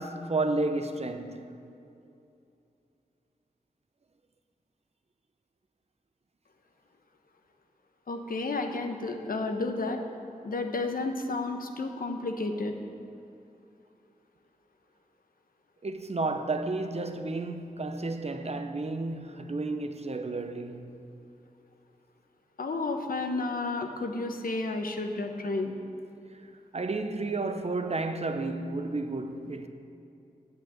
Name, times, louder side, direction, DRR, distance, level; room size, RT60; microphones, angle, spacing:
voice 1, 0.0-1.5 15.8-21.0 26.7-29.7, right 2 dB, 45° right, 0.8 m, -32 dB
voice 2, 8.1-10.0 10.4-12.8 22.6-25.8, left 3 dB, 70° left, 1.0 m, -31 dB
7.8 x 7.3 x 7.6 m
cardioid pair, 45°, 15 cm